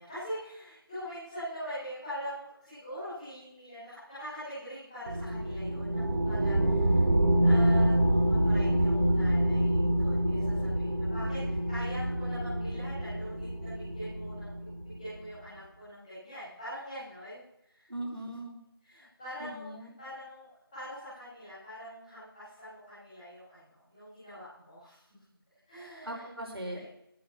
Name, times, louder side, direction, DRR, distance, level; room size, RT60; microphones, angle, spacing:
voice 1, 0.0-7.0 7.4-17.9 18.2-18.3 18.8-25.2 25.7-26.3 26.7-26.8, equal, 5° left, -17 dB, 5.5 m, -43 dB
sound 1, 5.1-15.1, right 1 dB, 50° right, 4.0 m, -27 dB
voice 2, 17.9-18.6 19.4-19.9 26.0-26.8, right 1 dB, 85° right, 0 dB, 5.0 m, -39 dB
18.5 x 9.1 x 6.2 m, 0.80 s
figure-of-eight pair, 175°, 12 cm